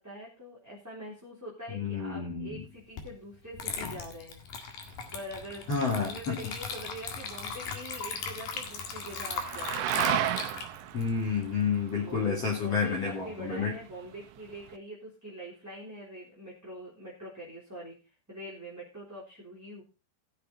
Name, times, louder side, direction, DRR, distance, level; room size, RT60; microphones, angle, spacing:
voice 1, 0.0-4.4 4.7-10.0 12.0-18.0 18.3-19.8, right 1 dB, 5° right, -6 dB, 2.8 m, -44 dB
voice 2, 1.7-2.6 5.7-6.4 10.9-13.7, left 5 dB, 40° left, -3 dB, 3.2 m, -30 dB
Water / Liquid, 3.0-3.1 3.5-12.1, left 5 dB, 55° left, 3.1 m, -38 dB
sound 1, 4.8-14.8, right 13 dB, 80° right, 2.9 m, -37 dB
16.5 x 6.9 x 4.0 m, 0.32 s
omnidirectional pair, 5.2 m